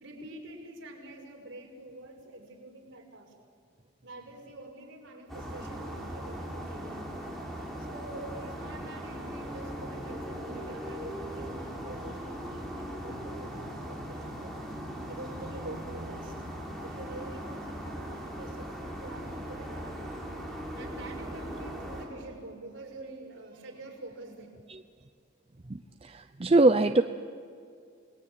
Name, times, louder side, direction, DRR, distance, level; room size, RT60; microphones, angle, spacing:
voice 1, 0.0-3.3 4.0-14.6 14.9-16.5 16.8-24.5, right 2 dB, 60° right, 0 dB, 5.9 m, -46 dB
sound 1, 5.3-22.1, equal, ahead, 4.9 m, -39 dB
voice 2, 25.7-27.0, right 2 dB, 30° right, 8 dB, 0.6 m, -23 dB
29.5 x 19.5 x 9.1 m, 2.3 s
head